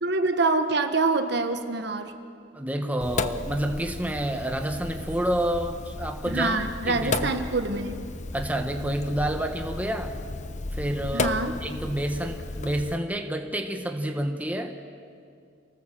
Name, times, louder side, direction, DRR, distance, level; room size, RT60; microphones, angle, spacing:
voice 1, 0.0-2.1 6.2-8.0 11.1-11.5, right 3 dB, 60° right, 7 dB, 1.4 m, -25 dB
voice 2, 2.5-7.4 8.3-10.1 10.7-14.8, right 1 dB, 10° right, 4 dB, 1.2 m, -29 dB
Sink (filling or washing), 3.0-12.9, left 2 dB, 40° left, 0.7 m, -34 dB
28.0 x 18.5 x 7.7 m, 2.3 s
head